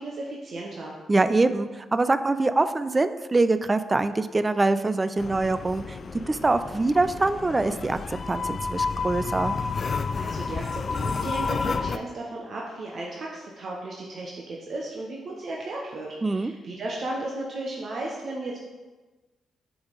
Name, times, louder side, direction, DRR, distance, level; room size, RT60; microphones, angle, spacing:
voice 1, 0.0-0.9 10.1-18.6, right 2 dB, 55° right, -2 dB, 0.9 m, -35 dB
voice 2, 1.1-8.0 8.3-9.6 16.2-16.5, right 3 dB, 30° right, 11 dB, 0.4 m, -24 dB
sound 1, 5.2-12.0, left 4 dB, 50° left, 0.3 m, -30 dB
7.8 x 3.5 x 4.0 m, 1.2 s
hypercardioid pair, 45°, 0 cm